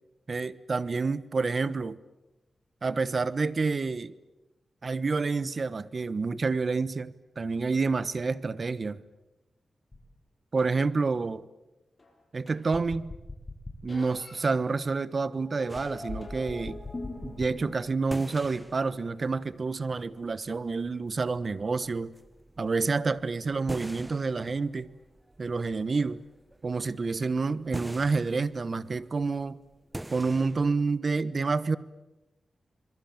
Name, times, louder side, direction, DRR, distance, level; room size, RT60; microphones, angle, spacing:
voice 1, 0.3-2.0 2.8-4.1 4.8-9.0 10.5-11.4 12.3-13.1 13.8-16.8 17.2-22.1 22.6-24.9 25.4-26.2 26.6-29.6 30.1-31.8, right 4 dB, 50° right, 1.1 m, -28 dB
sound 1, 9.9-10.0 10.6-10.7 12.0-12.1 12.5-14.4 15.3-17.9, left 2 dB, 30° left, 7.5 m, -40 dB
sound 2, 15.7-30.9, right 1 dB, 15° right, 0.9 m, -46 dB
26.5 x 23.0 x 8.9 m
wide cardioid pair, 85°, 0 cm